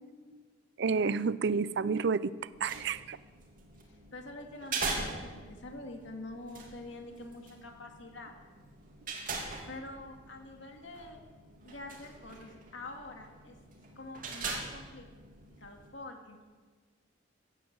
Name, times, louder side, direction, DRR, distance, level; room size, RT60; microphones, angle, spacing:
voice 1, 0.8-2.3 2.6-3.2, right 5 dB, 60° right, 18 dB, 0.5 m, -29 dB
sound 1, 2.4-15.9, right 3 dB, 45° right, 2.8 m, -42 dB
voice 2, 4.1-8.4 9.7-11.2 11.6-13.6 14.0-15.1 15.6-16.4, left 2 dB, 65° left, 3 dB, 2.2 m, -46 dB
15.5 x 10.0 x 7.9 m, 1.5 s
head